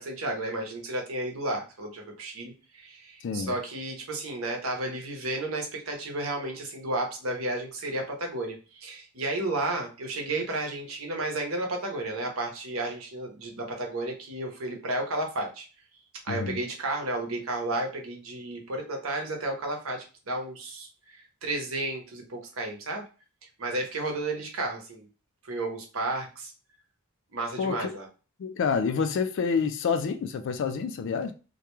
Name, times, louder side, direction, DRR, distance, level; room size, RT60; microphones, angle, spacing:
voice 1, 0.0-15.7 16.2-23.0 23.6-25.1 25.4-26.5 27.3-28.1, right 2 dB, 65° right, 0.8 m, -32 dB
voice 2, 3.2-3.6 16.3-16.6 27.6-27.9 28.4-31.3, left 5 dB, 55° left, 0.3 m, -28 dB
2.3 x 2.2 x 2.9 m
head